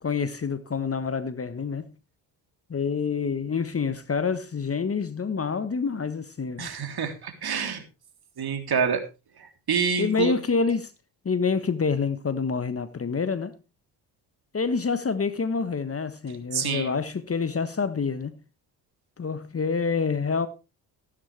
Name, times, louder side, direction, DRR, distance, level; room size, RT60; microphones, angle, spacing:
voice 1, 0.0-1.9 2.7-6.7 10.0-10.9 11.2-13.5 14.5-18.4 19.2-20.5, left 5 dB, 30° left, 1.3 m, -27 dB
voice 2, 6.6-7.8 8.4-9.0 9.4-10.4 16.5-17.0, right 6 dB, 50° right, 3.3 m, -27 dB
14.0 x 12.0 x 3.3 m
hypercardioid pair, 55°, 49 cm